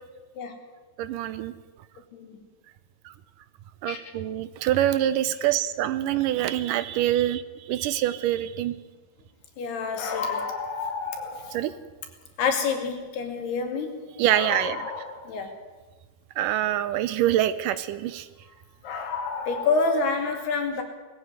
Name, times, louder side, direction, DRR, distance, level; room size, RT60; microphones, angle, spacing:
voice 1, 1.0-1.5 3.8-8.7 11.5-11.7 14.2-14.8 16.4-18.3, right 12 dB, 75° right, 13 dB, 2.0 m, -25 dB
voice 2, 2.1-2.4 3.9-4.0 9.6-11.6 12.4-13.9 14.3-15.6 18.8-20.8, left 4 dB, 80° left, 5 dB, 4.5 m, -28 dB
20.0 x 14.5 x 9.7 m, 1.3 s
omnidirectional pair, 4.5 m